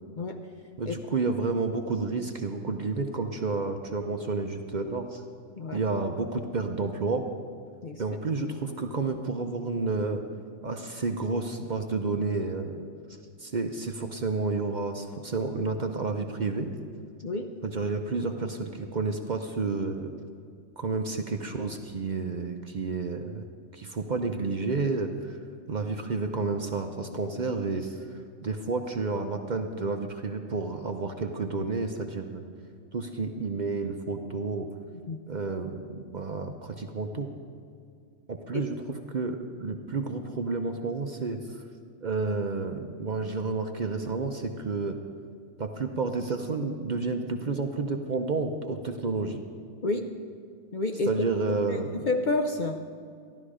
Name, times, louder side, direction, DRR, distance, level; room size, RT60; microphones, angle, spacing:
voice 1, 0.8-5.2 5.7-7.3 8.0-10.2 10.6-12.9 13.4-16.7 17.6-20.1 20.8-23.4 23.7-25.4 25.7-28.0 28.4-32.4 32.9-34.7 35.3-37.3 38.3-38.8 39.1-41.6 42.0-45.0 45.6-49.4 51.1-52.1, right 3 dB, 45° right, 5 dB, 0.7 m, -30 dB
voice 2, 49.8-50.1 50.7-51.1 51.5-52.8, left 2 dB, 50° left, 4 dB, 0.6 m, -29 dB
14.0 x 11.5 x 4.9 m, 2.2 s
omnidirectional pair, 1.3 m